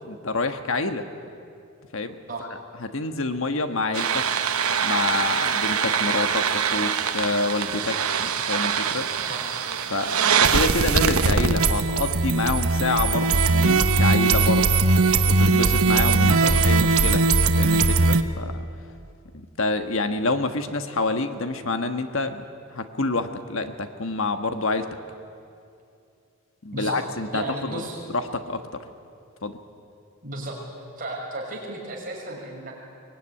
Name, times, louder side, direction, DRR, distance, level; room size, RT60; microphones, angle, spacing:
voice 1, 0.0-1.0 1.9-2.1 2.8-4.2 4.8-9.1 9.9-14.8 15.2-16.4 16.6-18.6 19.3-22.4 22.7-24.9 26.6-27.8 28.1-28.6 29.4-29.6, left 3 dB, 65° left, 7 dB, 1.4 m, -27 dB
sound 1, 3.9-18.2, right 4 dB, 80° right, 1.2 m, -21 dB
voice 2, 16.2-16.7 26.7-27.0 27.3-28.0 28.3-28.4 30.2-30.6 31.0-32.7, right 2 dB, 40° right, -2 dB, 6.2 m, -34 dB
23.5 x 20.0 x 10.0 m, 2.5 s
head